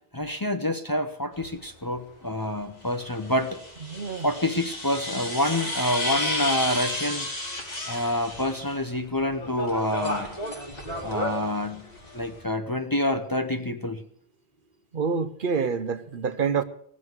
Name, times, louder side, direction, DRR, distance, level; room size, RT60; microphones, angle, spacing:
voice 1, 0.1-3.6 4.2-7.3 7.9-10.3 11.0-11.9 12.1-14.0, left 1 dB, 20° left, 0.7 m, -27 dB
sound 1, 1.3-1.5 2.9-8.9 9.2-12.4, left 1 dB, 40° left, 3.0 m, -33 dB
voice 2, 3.9-4.3 14.9-16.6, right 6 dB, 55° right, 0.9 m, -27 dB
18.0 x 7.5 x 7.9 m
omnidirectional pair, 1.1 m